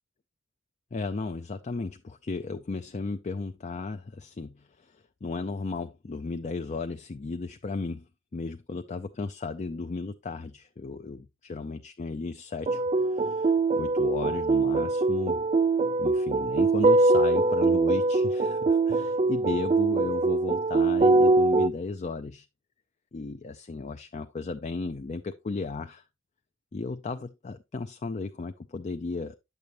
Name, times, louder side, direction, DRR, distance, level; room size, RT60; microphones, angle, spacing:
voice 1, 0.9-8.1 8.3-15.4 16.0-22.5 23.1-26.0 26.7-29.4, left 3 dB, 35° left, 0.4 m, -35 dB
sound 1, 12.7-21.7, right 3 dB, 30° right, 0.5 m, -23 dB
9.5 x 6.8 x 2.9 m
head